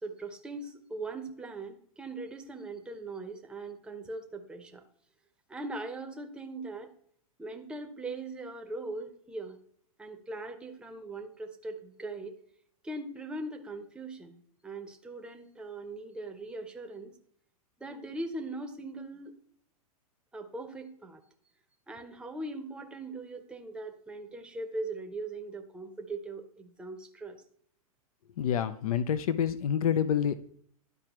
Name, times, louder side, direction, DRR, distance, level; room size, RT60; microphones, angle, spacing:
voice 1, 0.0-4.8 5.5-6.9 7.4-9.6 10.0-12.3 12.8-17.1 17.8-19.3 20.3-21.2 21.9-27.4, right 2 dB, 5° right, 5 dB, 0.7 m, -40 dB
voice 2, 28.4-30.3, left 8 dB, 75° left, 13 dB, 0.5 m, -27 dB
11.5 x 4.8 x 2.9 m, 0.63 s
hypercardioid pair, 120°, 19 cm